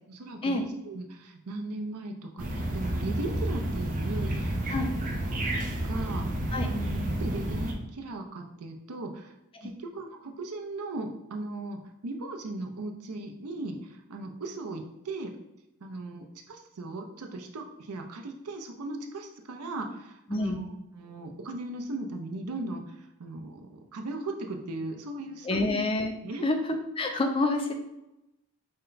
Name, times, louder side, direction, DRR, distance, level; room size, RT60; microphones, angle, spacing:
voice 1, 0.1-4.9 5.3-9.3 9.6-15.3 15.8-25.7 26.2-26.5, right 2 dB, 90° right, 4 dB, 0.6 m, -38 dB
sound 1, 2.4-7.7, right 1 dB, 35° right, 0.5 m, -30 dB
voice 2, 25.5-26.1 26.4-26.6 27.0-27.7, left 2 dB, 25° left, 4 dB, 0.3 m, -27 dB
4.4 x 2.2 x 3.9 m, 0.90 s
head